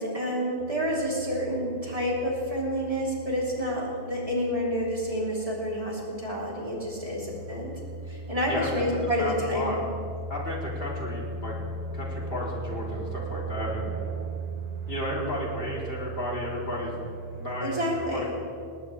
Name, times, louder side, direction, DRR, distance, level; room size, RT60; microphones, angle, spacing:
voice 1, 0.0-7.7 8.1-9.8 17.6-18.3, equal, 35° right, -4 dB, 3.5 m, -29 dB
sound 1, 0.6-18.0, right 3 dB, 55° right, 1.3 m, -38 dB
voice 2, 8.5-8.8 9.2-9.8 10.3-11.5 11.9-13.9 14.9-16.9 17.4-18.3, left 1 dB, 65° left, -4 dB, 3.3 m, -33 dB
19.0 x 18.5 x 3.3 m, 2.5 s
omnidirectional pair, 1.0 m